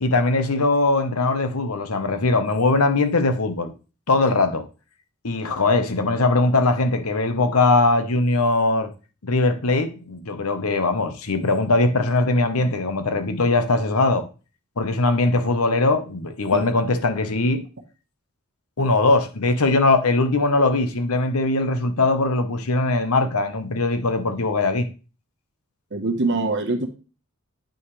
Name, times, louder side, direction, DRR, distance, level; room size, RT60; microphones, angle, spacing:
voice 1, 0.0-3.7 4.1-4.7 5.2-8.9 9.2-14.2 14.8-17.6 18.8-24.9, left 2 dB, 75° left, 1.0 m, -21 dB
voice 2, 25.9-26.9, right 3 dB, 55° right, 1.1 m, -23 dB
9.0 x 5.9 x 3.2 m
head